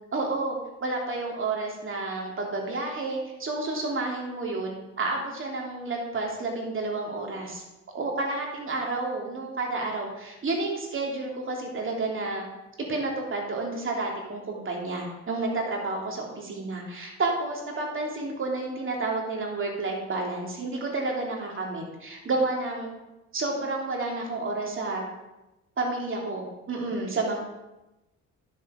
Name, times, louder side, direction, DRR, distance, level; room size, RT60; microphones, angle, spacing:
voice 1, 0.1-7.6 7.9-12.4 12.9-22.9 23.3-25.0 25.8-27.4, right 3 dB, 40° right, 0 dB, 2.9 m, -30 dB
10.5 x 6.9 x 5.0 m, 0.99 s
cardioid pair, 90°, 30 cm